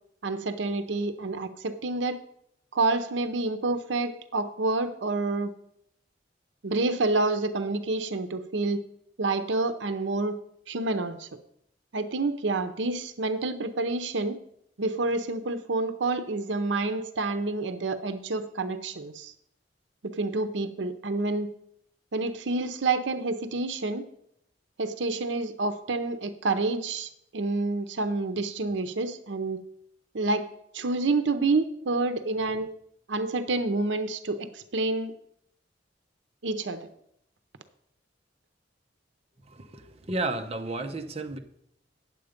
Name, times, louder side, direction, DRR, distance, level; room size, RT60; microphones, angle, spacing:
voice 1, 0.2-2.2 2.7-5.5 6.6-8.8 9.2-10.4 10.7-11.3 11.9-14.4 14.8-19.3 20.0-21.5 22.1-24.0 24.8-29.6 30.1-30.5 30.7-32.7 33.1-35.1 36.4-36.9, right 3 dB, 85° right, 11 dB, 0.7 m, -28 dB
voice 2, 39.5-41.4, right 2 dB, 35° right, 4 dB, 0.8 m, -32 dB
9.2 x 7.7 x 5.1 m, 0.72 s
head